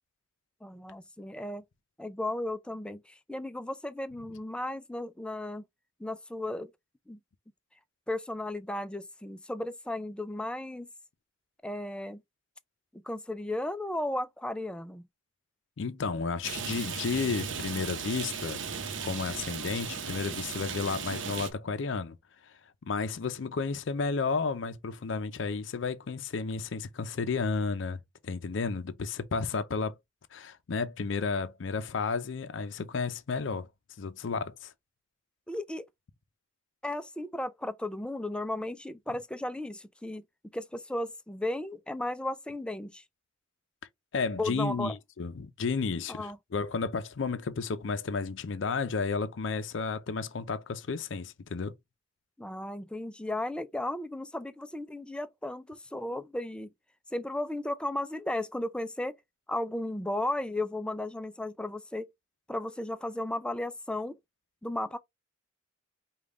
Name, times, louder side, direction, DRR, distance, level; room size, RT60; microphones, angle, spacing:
voice 1, 0.6-1.6 2.0-5.6 6.0-6.7 7.1-7.2 8.1-10.9 11.6-12.2 12.9-15.0 35.5-35.9 36.8-40.2 40.5-43.0 44.4-44.9 46.1-46.4 52.4-56.7 57.1-59.2 59.5-62.1 62.5-64.2 64.6-65.0, left 1 dB, 5° left, 0.4 m, -35 dB
voice 2, 15.8-18.7 19.0-22.2 22.4-22.5 22.8-30.0 30.3-33.7 34.0-34.7 44.1-51.7, left 4 dB, 70° left, 0.5 m, -32 dB
Rain, 16.4-21.5, right 6 dB, 70° right, 0.8 m, -36 dB
5.2 x 2.3 x 3.5 m
head